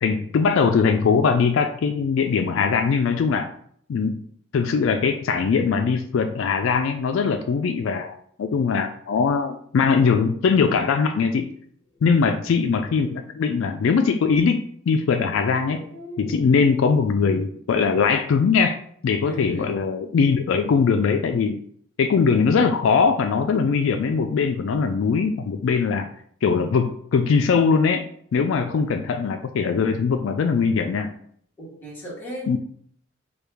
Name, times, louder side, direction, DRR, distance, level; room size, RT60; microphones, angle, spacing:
voice 1, 0.0-3.5 3.9-4.2 4.5-11.5 12.0-15.8 16.2-18.8 19.0-21.6 22.0-26.1 26.4-28.0 28.3-31.1 32.5-32.6, left 5 dB, 65° left, 6 dB, 0.3 m, -21 dB
sound 1, 11.8-13.1 14.6-14.7 15.4-16.7, left 1 dB, 40° left, 1.3 m, -45 dB
voice 2, 12.0-12.4 19.2-19.8 31.6-32.6, equal, 10° left, -6 dB, 1.2 m, -35 dB
4.7 x 2.3 x 3.3 m, 0.62 s
head